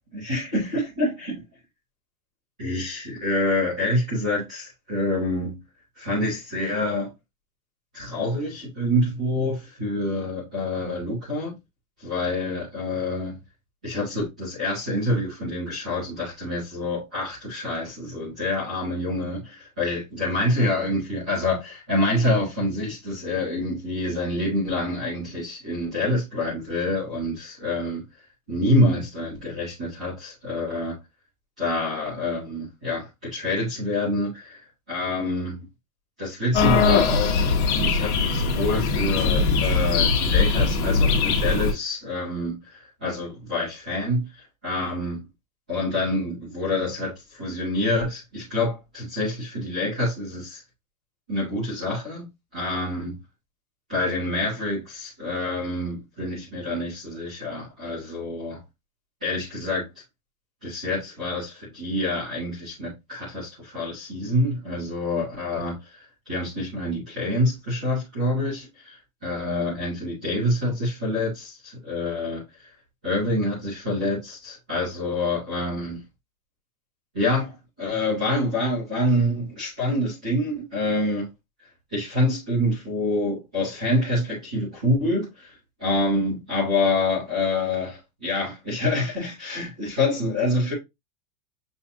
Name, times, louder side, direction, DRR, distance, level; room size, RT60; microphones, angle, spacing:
voice 1, 0.1-1.4 2.6-5.6 6.0-7.1 7.9-11.5 12.0-13.4 13.8-28.0 28.5-31.0 31.6-34.6 34.9-35.6 36.2-37.4 37.8-45.2 45.7-50.6 51.3-52.3 52.5-53.2 53.9-58.6 59.2-59.9 60.6-69.0 69.2-72.7 73.0-76.0 77.1-81.3 81.9-90.7, left 1 dB, 5° right, 0.3 m, -26 dB
sound 1, 36.5-41.7, left 4 dB, 50° left, 1.4 m, -21 dB
6.7 x 2.6 x 2.6 m
supercardioid pair, 170°, 43 cm